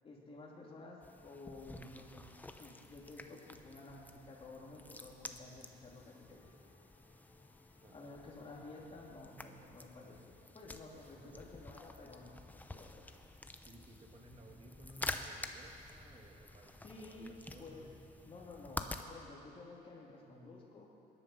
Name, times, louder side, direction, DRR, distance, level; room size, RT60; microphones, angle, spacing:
voice 1, 0.0-2.3 2.6-6.5 7.9-13.1 16.8-17.3 17.6-17.9 18.2-20.9, left 2 dB, 35° left, -2 dB, 3.0 m, -52 dB
sound 1, 1.0-19.1, left 2 dB, 10° left, 0.8 m, -49 dB
sound 2, 6.0-12.0, left 5 dB, 60° left, 3.1 m, -71 dB
voice 2, 11.1-11.5 13.6-18.0, right 1 dB, 35° right, 2 dB, 2.0 m, -58 dB
20.0 x 11.0 x 5.7 m, 2.8 s
cardioid pair, 110°, 17 cm